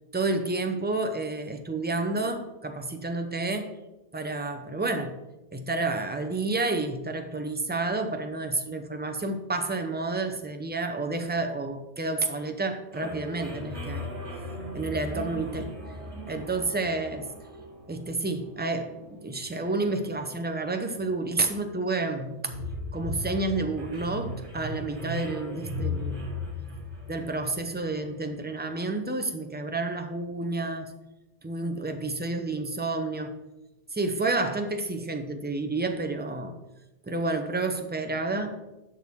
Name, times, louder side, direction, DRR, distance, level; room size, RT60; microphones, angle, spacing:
voice 1, 0.1-3.7 4.1-5.2 5.5-14.1 14.7-15.7 16.3-17.3 17.9-22.4 22.9-26.2 27.1-30.9 31.4-33.3 33.9-36.6 37.0-38.6, right 2 dB, 10° right, 5 dB, 0.5 m, -30 dB
sound 1, 12.9-28.3, left 2 dB, 75° right, 2.2 m, -38 dB
11.0 x 6.2 x 3.6 m, 1.0 s
omnidirectional pair, 1.2 m